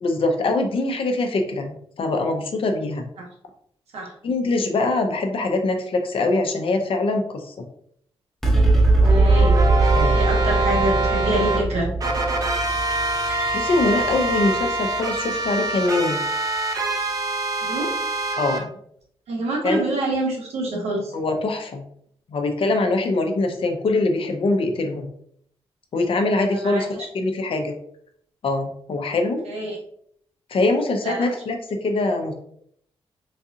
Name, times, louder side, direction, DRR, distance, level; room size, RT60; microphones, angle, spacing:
voice 1, 0.0-3.0 4.2-7.7 9.9-10.2 13.5-16.2 18.4-18.7 19.6-19.8 21.1-21.8 22.3-25.1 25.9-26.9 27.1-27.8 28.4-29.4 30.5-32.3, left 2 dB, 60° left, 4 dB, 0.6 m, -23 dB
sound 1, 8.4-15.1, right 2 dB, 5° left, 0.8 m, -20 dB
sound 2, 9.0-11.6 12.0-18.6, right 2 dB, 35° right, 0.7 m, -25 dB
voice 2, 9.1-9.6 9.8-11.9 17.6-17.9 19.3-21.1 26.3-26.9 29.4-29.8 31.0-31.3, right 1 dB, 85° right, -2 dB, 1.1 m, -26 dB
4.0 x 2.4 x 2.7 m, 0.67 s
cardioid pair, 90°, 10 cm